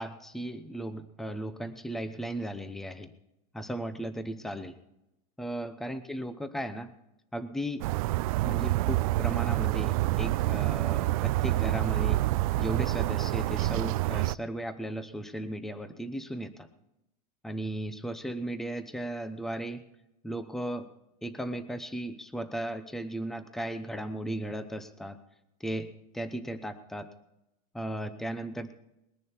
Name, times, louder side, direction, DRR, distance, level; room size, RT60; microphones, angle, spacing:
voice 1, 0.0-3.1 3.5-4.8 5.4-6.9 7.3-7.9 8.4-12.2 12.6-16.7 17.4-19.8 20.2-20.9 21.2-25.2 25.6-27.1 27.7-28.7, right 1 dB, ahead, 9 dB, 0.8 m, -36 dB
sound 1, 7.8-14.4, right 17 dB, 65° right, 0.4 m, -27 dB
21.0 x 10.5 x 4.4 m, 0.87 s
supercardioid pair, 160°, 20 cm